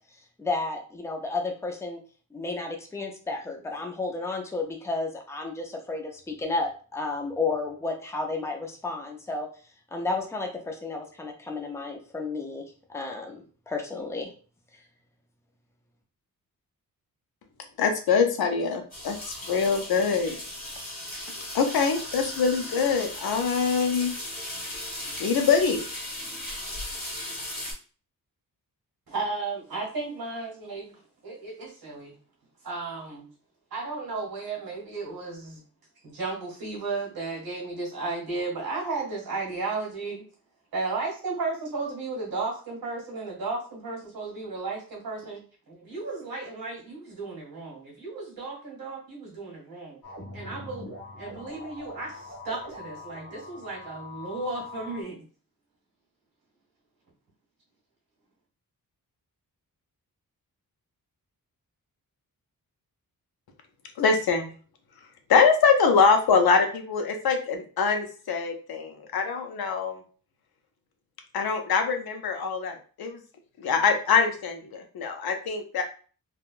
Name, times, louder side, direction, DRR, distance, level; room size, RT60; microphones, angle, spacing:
voice 1, 0.4-2.0 2.3-9.5 9.9-14.3, left 3 dB, 10° left, 2 dB, 0.4 m, -32 dB
voice 2, 17.8-20.4 21.5-24.1 25.2-25.8 64.0-64.5 65.3-70.0 71.3-73.2 73.6-75.8, left 5 dB, 90° left, 5 dB, 0.6 m, -24 dB
sound 1, 18.9-27.7, left 1 dB, 25° left, 1.3 m, -37 dB
voice 3, 29.1-32.2 32.6-33.3 33.7-35.6 36.0-40.2 40.7-45.4 45.7-50.0 50.3-50.9 51.2-55.3, right 3 dB, 90° right, -3 dB, 1.3 m, -34 dB
sound 2, 50.0-55.0, left 2 dB, 60° left, 1.4 m, -43 dB
3.6 x 2.2 x 2.4 m, 0.39 s
wide cardioid pair, 175°, 36 cm